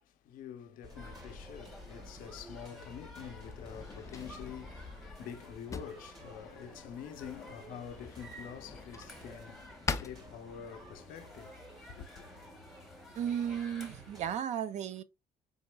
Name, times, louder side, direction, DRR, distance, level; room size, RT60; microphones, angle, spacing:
voice 1, 0.0-12.2, left 8 dB, 80° left, 0.7 m, -47 dB
sound 1, 0.8-14.3, left 2 dB, 30° right, 2.0 m, -53 dB
sound 2, 0.9-14.4, equal, ahead, 1.2 m, -53 dB
Drawer open or close, 2.2-11.0, left 4 dB, 20° left, 0.4 m, -44 dB
voice 2, 13.1-15.0, right 9 dB, 55° right, 0.4 m, -34 dB
4.1 x 3.6 x 2.2 m
cardioid pair, 105°, 14 cm